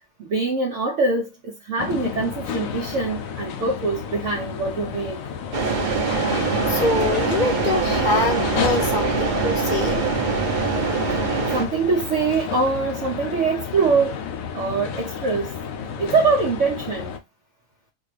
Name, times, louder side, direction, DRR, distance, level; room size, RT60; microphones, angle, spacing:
voice 1, 0.2-5.2 9.0-9.3 11.1-11.2 11.5-14.2 14.5-15.5 16.0-17.2, right 4 dB, 70° right, 1.0 m, -23 dB
sound 1, 1.8-17.2, left 7 dB, 85° left, 1.0 m, -31 dB
sound 2, 5.5-11.6, right 4 dB, 40° right, 0.9 m, -23 dB
voice 2, 6.7-10.0, left 3 dB, 40° left, 0.8 m, -24 dB
4.0 x 2.3 x 3.2 m
omnidirectional pair, 1.4 m